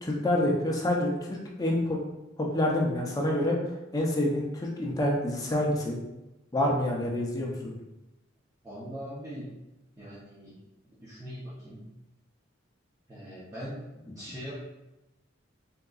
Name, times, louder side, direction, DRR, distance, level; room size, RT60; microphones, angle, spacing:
voice 1, 0.0-2.0 2.4-3.6 3.9-6.0 6.5-7.7, left 1 dB, 20° left, -2 dB, 0.6 m, -27 dB
voice 2, 8.6-9.5 10.0-10.6 11.0-11.8 13.1-13.8 14.2-14.6, equal, 15° right, -11 dB, 0.7 m, -41 dB
3.7 x 2.8 x 2.3 m, 0.96 s
head